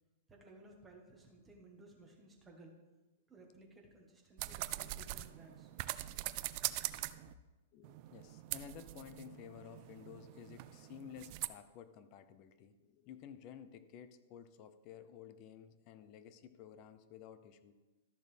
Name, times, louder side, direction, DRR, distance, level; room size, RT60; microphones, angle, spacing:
voice 1, 0.3-2.8 3.3-5.7, right 2 dB, 10° right, 0 dB, 1.4 m, -58 dB
sound 1, 4.4-7.3 7.8-11.5, right 16 dB, 40° right, 0.3 m, -43 dB
voice 2, 7.7-17.7, left 9 dB, 35° left, 11 dB, 0.6 m, -53 dB
13.0 x 6.4 x 3.4 m, 1.1 s
hypercardioid pair, 160°, 0 cm